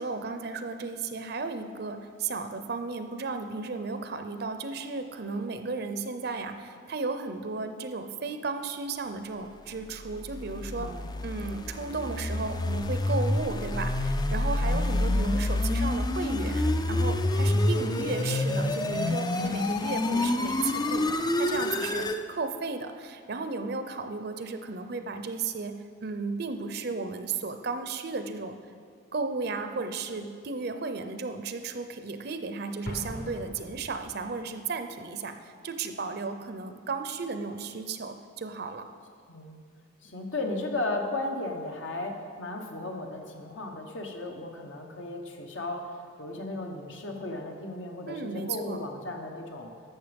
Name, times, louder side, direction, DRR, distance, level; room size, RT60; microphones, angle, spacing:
voice 1, 0.0-10.9 11.2-28.6 29.1-38.9 48.1-48.8, right 4 dB, 55° right, 8 dB, 0.6 m, -34 dB
sound 1, 10.0-22.2, left 1 dB, 20° left, 0.4 m, -28 dB
voice 2, 10.7-11.1 17.4-18.2 39.3-39.6 40.0-49.7, left 2 dB, 75° left, 2 dB, 1.2 m, -35 dB
Explosion, 32.8-34.4, equal, 50° left, 1.0 m, -40 dB
12.0 x 7.1 x 5.2 m, 2.1 s
head